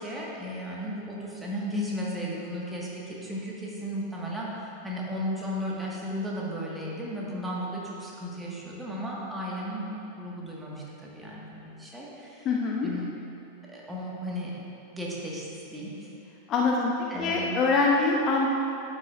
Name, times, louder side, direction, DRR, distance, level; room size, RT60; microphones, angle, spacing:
voice 1, 0.0-12.5 12.8-13.1 13.7-14.5 14.9-16.1 17.1-17.5, equal, 10° right, -5 dB, 1.7 m, -35 dB
voice 2, 12.4-12.9 16.5-16.9 17.2-18.5, left 3 dB, 35° left, -1 dB, 0.7 m, -24 dB
11.0 x 8.1 x 2.5 m, 2.8 s
figure-of-eight pair, 90°, 0 cm